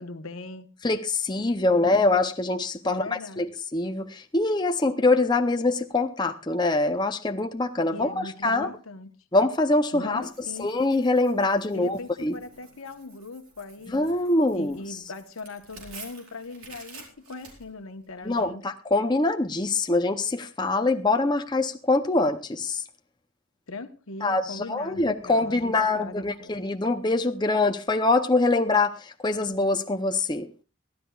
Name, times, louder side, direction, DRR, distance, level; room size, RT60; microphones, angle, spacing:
voice 1, 0.0-0.7 1.7-1.9 2.8-3.5 7.9-9.1 9.9-10.7 11.7-14.0 14.5-18.7 23.7-26.6, left 3 dB, 80° left, 1.2 m, -40 dB
voice 2, 0.8-8.7 9.3-10.2 10.6-12.3 13.9-14.8 18.2-22.8 24.2-30.5, left 2 dB, 20° left, 0.6 m, -24 dB
Tearing, 10.2-18.4, right 4 dB, 90° right, 4.7 m, -50 dB
22.5 x 14.0 x 2.4 m
head